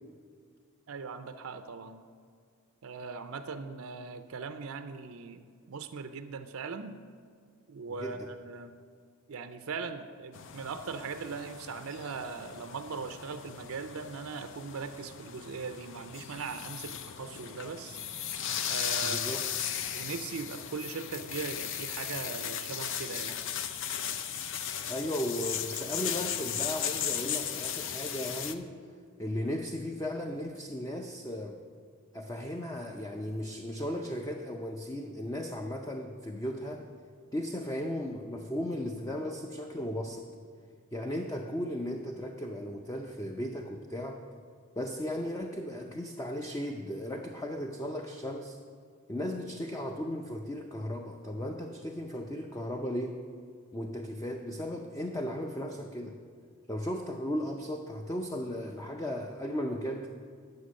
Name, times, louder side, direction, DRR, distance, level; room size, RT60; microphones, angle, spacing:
voice 1, 0.9-2.1 2.8-7.0 7.7-8.7 9.3-18.0 18.6-19.3 19.9-23.5, right 5 dB, 75° right, 9 dB, 0.5 m, -40 dB
sound 1, 10.3-28.5, left 9 dB, 65° left, 0.5 m, -36 dB
voice 2, 19.0-19.4 24.9-28.8 29.2-31.6 32.1-36.8 37.3-40.3 40.9-44.2 44.8-48.6 49.1-53.2 53.7-56.2 56.7-60.1, equal, 15° left, 3 dB, 0.5 m, -36 dB
9.6 x 6.8 x 6.3 m, 2.1 s
head